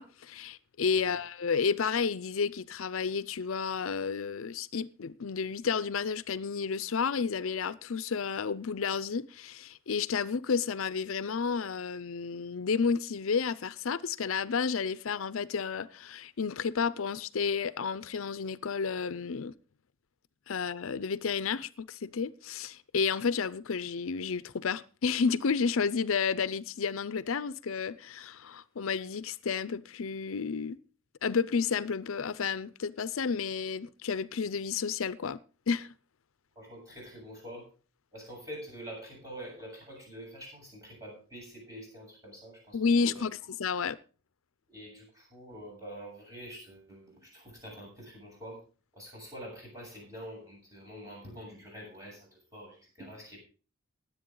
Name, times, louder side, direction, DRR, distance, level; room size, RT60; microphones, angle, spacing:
voice 1, 0.0-19.5 20.5-30.8 31.2-35.4 35.7-35.9 42.7-44.0, left 5 dB, 80° left, 0.6 m, -31 dB
voice 2, 36.5-37.6 38.1-43.3 44.7-48.6 48.9-53.4, equal, 15° right, 7.8 m, -46 dB
20.0 x 8.2 x 3.9 m
head